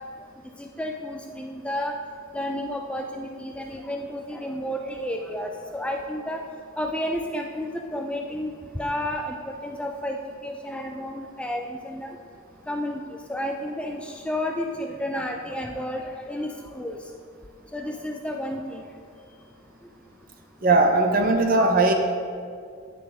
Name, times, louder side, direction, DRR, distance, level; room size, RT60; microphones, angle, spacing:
voice 1, 0.6-2.0 2.3-6.4 6.8-9.4 9.6-10.2 10.4-12.2 12.7-13.0 13.3-17.0 17.7-18.8 21.6-21.7, left 1 dB, 5° left, 2 dB, 0.4 m, -31 dB
voice 2, 20.6-21.9, right 2 dB, 45° right, 4 dB, 0.8 m, -19 dB
9.8 x 8.8 x 3.6 m, 2.3 s
head